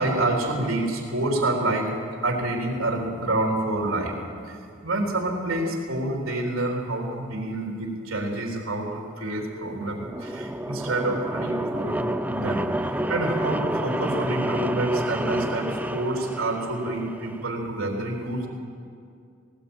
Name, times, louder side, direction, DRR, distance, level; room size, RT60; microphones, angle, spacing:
voice 1, 0.0-1.9 2.2-4.2 4.4-4.6 4.8-18.5, right 2 dB, 80° right, 0 dB, 3.5 m, -28 dB
sound 1, 9.6-17.5, right 1 dB, 10° right, 0.6 m, -29 dB
19.0 x 18.5 x 8.9 m, 2.4 s
head